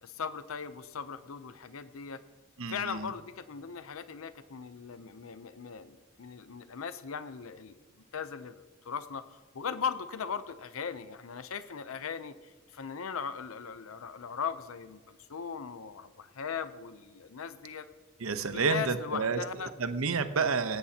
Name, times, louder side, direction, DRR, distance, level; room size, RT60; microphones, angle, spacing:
voice 1, 0.0-2.2 2.7-7.8 8.1-17.9 18.5-19.7, left 6 dB, 85° left, 12 dB, 0.6 m, -38 dB
voice 2, 2.6-3.1 18.2-19.4 19.8-20.8, right 5 dB, 85° right, 10 dB, 0.9 m, -30 dB
17.5 x 16.5 x 2.9 m, 1.5 s
head